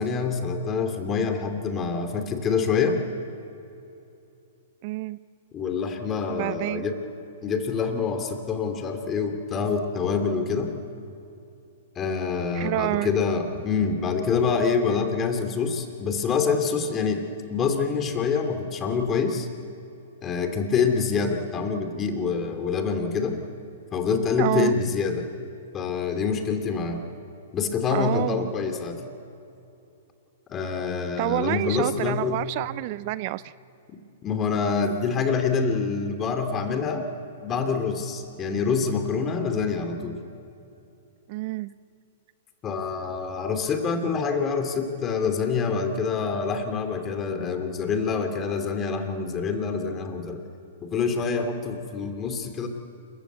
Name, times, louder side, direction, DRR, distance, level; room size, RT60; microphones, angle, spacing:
voice 1, 0.0-3.0 5.5-7.0 7.4-10.7 12.0-17.2 17.5-19.5 20.2-23.4 23.9-25.2 25.7-27.0 27.5-29.0 30.5-32.4 33.9-37.0 37.4-40.2 42.6-50.4 50.8-52.7, left 5 dB, 25° left, 5 dB, 2.8 m, -26 dB
voice 2, 4.8-5.2 6.3-6.8 12.5-13.1 24.4-24.7 27.9-28.5 31.2-33.5 41.3-41.7, right 18 dB, 45° right, 18 dB, 0.4 m, -28 dB
28.0 x 15.5 x 8.2 m, 2.7 s
hypercardioid pair, 115°, 0 cm